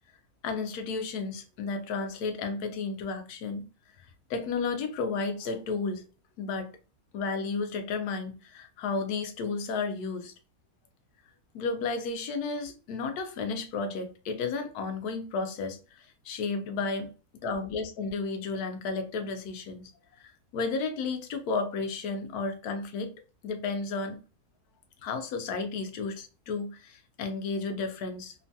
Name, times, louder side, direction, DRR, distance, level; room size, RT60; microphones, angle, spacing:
voice 1, 0.4-3.6 4.3-6.1 6.4-6.7 7.1-10.3 11.5-17.1 17.4-19.9 20.2-23.1 23.4-24.2 25.0-28.3, left 4 dB, 85° left, 1.1 m, -33 dB
3.0 x 2.1 x 2.7 m
omnidirectional pair, 1.6 m